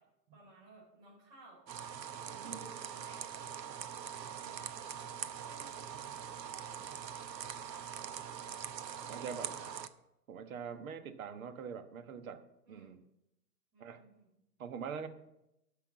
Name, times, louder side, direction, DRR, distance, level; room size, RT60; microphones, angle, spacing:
voice 1, 0.3-1.6 2.2-3.2 4.1-5.1 5.4-6.3 9.0-9.8 12.6-12.9 13.7-14.3, right 2 dB, 35° right, -7 dB, 5.4 m, -59 dB
sound 1, 1.7-9.9, right 8 dB, 80° right, 0.9 m, -43 dB
voice 2, 2.3-2.7 9.1-9.5 10.3-12.4 12.7-13.0 13.8-14.0 14.6-15.1, right 6 dB, 55° right, 10 dB, 1.3 m, -43 dB
12.0 x 6.1 x 7.3 m, 0.87 s
hypercardioid pair, 140°, 50 cm